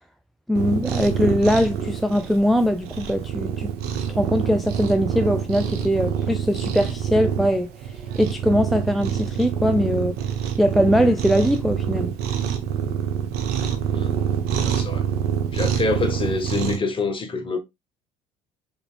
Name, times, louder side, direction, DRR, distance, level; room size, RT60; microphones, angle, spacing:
voice 1, 0.5-10.2 10.6-12.1, equal, ahead, 0.3 m, -21 dB
Cat, 0.5-16.8, right 8 dB, 60° right, 1.0 m, -26 dB
voice 2, 14.5-15.0 15.5-17.6, left 3 dB, 30° left, 1.2 m, -26 dB
5.1 x 3.2 x 2.4 m
figure-of-eight pair, 60°, 18 cm